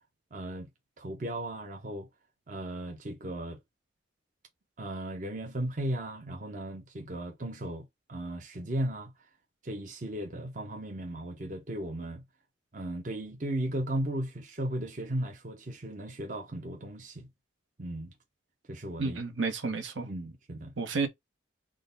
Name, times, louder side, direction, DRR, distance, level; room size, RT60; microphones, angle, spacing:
voice 1, 0.3-0.7 1.0-2.1 2.5-3.6 4.8-9.1 9.6-12.2 12.7-17.3 17.8-18.1 18.7-19.2 20.0-20.7, right 1 dB, 40° right, 0.6 m, -36 dB
voice 2, 19.0-20.1 20.8-21.1, right 4 dB, 80° right, 0.9 m, -31 dB
3.7 x 2.2 x 3.9 m
head